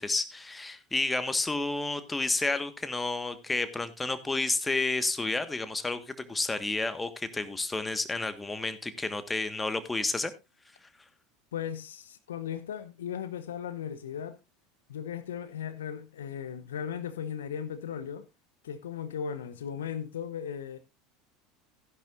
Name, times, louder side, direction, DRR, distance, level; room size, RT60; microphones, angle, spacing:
voice 1, 0.0-10.3, left 3 dB, 15° left, 1.6 m, -31 dB
voice 2, 11.5-14.4 14.9-18.3 18.6-20.8, left 8 dB, 75° left, 0.9 m, -37 dB
15.5 x 10.5 x 2.6 m
figure-of-eight pair, 75°, 0 cm